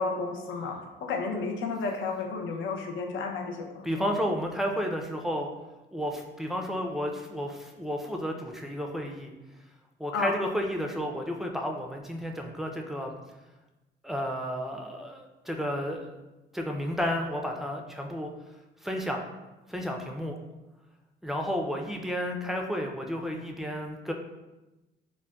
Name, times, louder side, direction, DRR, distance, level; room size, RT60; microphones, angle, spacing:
voice 1, 0.0-4.0 10.1-10.3, left 4 dB, 75° left, 3 dB, 0.5 m, -32 dB
voice 2, 3.8-5.5 5.9-9.3 10.0-13.1 14.0-16.1 16.5-18.3 18.8-19.3 19.7-20.4 21.2-24.1, equal, ahead, 2 dB, 0.3 m, -32 dB
3.9 x 2.1 x 2.2 m, 1.0 s
cardioid pair, 90°, 20 cm